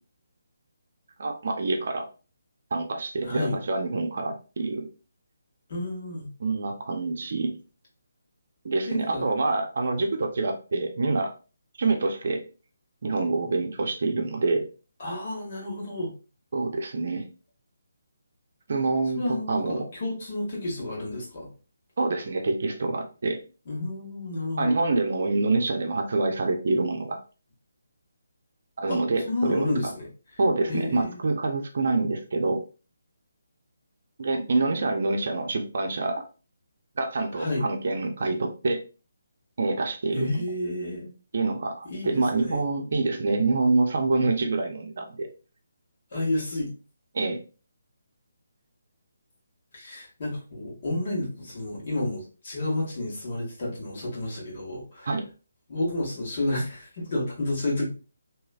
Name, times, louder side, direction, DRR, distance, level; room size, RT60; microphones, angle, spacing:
voice 1, 1.2-2.1 2.7-4.9 6.4-7.6 8.6-11.3 11.8-12.4 13.0-14.7 16.5-17.3 18.7-19.9 22.0-23.4 24.6-27.2 28.8-29.7 30.4-32.6 34.2-36.1 37.0-38.8 39.6-40.4 41.3-45.3 47.1-47.4 55.1-55.2, right 3 dB, 55° right, 4 dB, 0.6 m, -26 dB
voice 2, 3.2-3.6 5.7-6.3 8.9-9.3 15.0-16.1 19.1-21.5 23.7-24.8 28.9-29.0 29.3-30.1 30.7-31.2 37.3-37.6 40.1-41.1 41.9-42.6 46.1-46.7 49.7-55.1 55.7-57.9, left 1 dB, 45° left, -3 dB, 1.7 m, -30 dB
3.1 x 3.0 x 2.3 m, 0.34 s
figure-of-eight pair, 145°, 0 cm